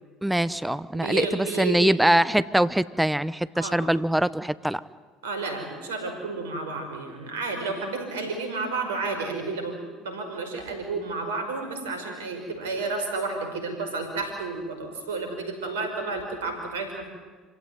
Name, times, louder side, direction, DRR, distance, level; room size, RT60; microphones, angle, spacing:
voice 1, 0.2-4.8, right 1 dB, 5° right, 16 dB, 1.0 m, -23 dB
voice 2, 0.9-1.9 3.6-3.8 5.2-9.8 10.0-17.1, right 3 dB, 85° right, 5 dB, 5.3 m, -31 dB
27.0 x 16.5 x 9.5 m, 1.4 s
hypercardioid pair, 65°, 0 cm